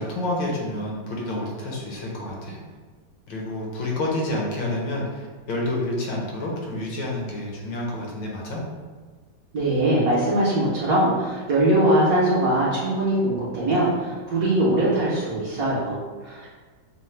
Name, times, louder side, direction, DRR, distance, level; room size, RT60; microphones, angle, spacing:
voice 1, 0.0-2.6 3.3-8.6, left 1 dB, 70° left, -3 dB, 1.5 m, -29 dB
voice 2, 9.5-16.5, right 1 dB, 60° right, -7 dB, 1.0 m, -22 dB
5.6 x 2.1 x 3.2 m, 1.5 s
omnidirectional pair, 2.1 m